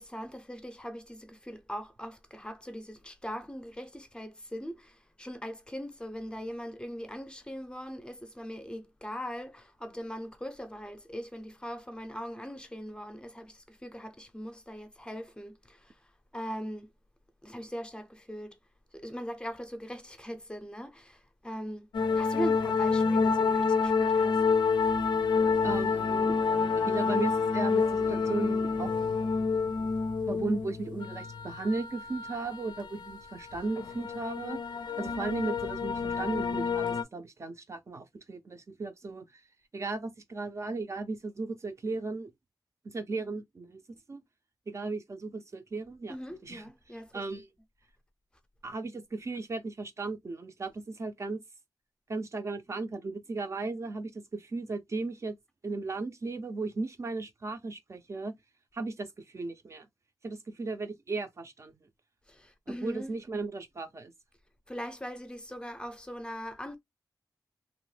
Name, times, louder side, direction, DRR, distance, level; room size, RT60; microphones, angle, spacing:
voice 1, 0.0-16.9 17.4-18.6 18.9-21.9 22.1-24.4 24.8-24.9 46.1-47.2 62.3-63.1 64.7-66.8, equal, 10° left, 0.5 m, -40 dB
sound 1, 21.9-37.0, left 5 dB, 90° left, 0.4 m, -28 dB
voice 2, 25.6-26.4 26.8-28.9 29.6-29.7 30.3-34.6 35.0-39.4 39.7-42.3 42.8-43.8 44.1-44.2 44.7-46.2 46.4-47.5 48.6-51.4 52.1-55.4 55.6-58.3 58.7-59.9 60.2-61.7 62.7-64.1, right 3 dB, 40° right, 0.4 m, -36 dB
2.9 x 2.0 x 3.1 m
wide cardioid pair, 110°, 8 cm